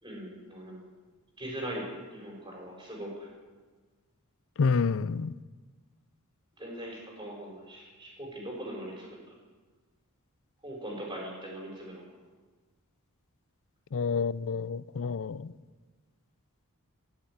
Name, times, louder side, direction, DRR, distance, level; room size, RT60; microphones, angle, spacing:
voice 1, 0.0-0.9 1.4-3.3 6.6-9.2 10.6-12.0, right 1 dB, 20° right, -2 dB, 5.1 m, -40 dB
voice 2, 4.6-5.3 13.9-15.5, left 5 dB, 60° left, 18 dB, 0.5 m, -28 dB
16.5 x 7.4 x 9.6 m, 1.4 s
head